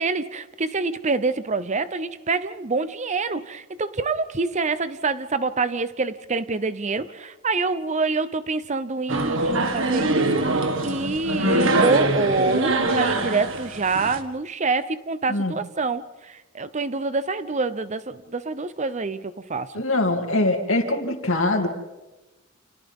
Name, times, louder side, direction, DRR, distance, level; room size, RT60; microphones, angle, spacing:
voice 1, 0.0-19.7, right 3 dB, 30° right, 13 dB, 0.7 m, -26 dB
sound 1, 9.1-14.2, right 2 dB, 60° right, 1.8 m, -23 dB
voice 2, 19.7-21.7, left 2 dB, 60° left, 3 dB, 2.8 m, -23 dB
29.5 x 29.0 x 3.6 m, 1.1 s
head